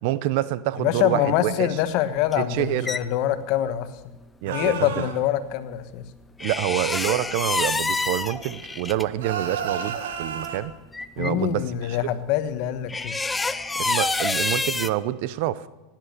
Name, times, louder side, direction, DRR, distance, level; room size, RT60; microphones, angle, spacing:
voice 1, 0.0-1.7 2.4-2.9 4.4-5.1 6.4-10.7 11.2-11.6 11.9-12.0 13.8-15.7, right 14 dB, 60° right, 17 dB, 0.7 m, -27 dB
voice 2, 0.8-3.9 4.4-6.1 11.2-13.1, left 12 dB, 55° left, 11 dB, 1.2 m, -25 dB
sound 1, 2.3-3.0 6.4-9.0 10.1-10.2 10.4-10.5 10.9-11.3 12.9-14.9, left 3 dB, 10° left, 0.6 m, -27 dB
sound 2, 4.5-5.2 9.2-10.6, right 7 dB, 85° right, 1.8 m, -31 dB
16.5 x 10.5 x 6.7 m, 1.1 s
supercardioid pair, 125°, 0 cm